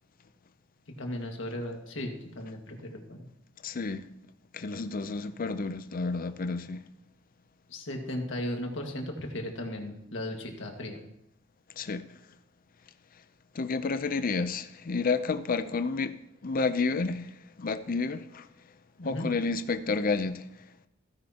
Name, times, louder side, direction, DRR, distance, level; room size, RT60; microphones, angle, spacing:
voice 1, 1.0-3.3 7.7-11.0 19.0-19.3, left 1 dB, 65° left, 1.8 m, -36 dB
voice 2, 3.6-4.1 4.5-6.9 11.8-12.1 13.5-16.2 16.4-18.5 19.0-20.7, left 4 dB, 45° left, 0.6 m, -30 dB
15.5 x 9.9 x 2.9 m
head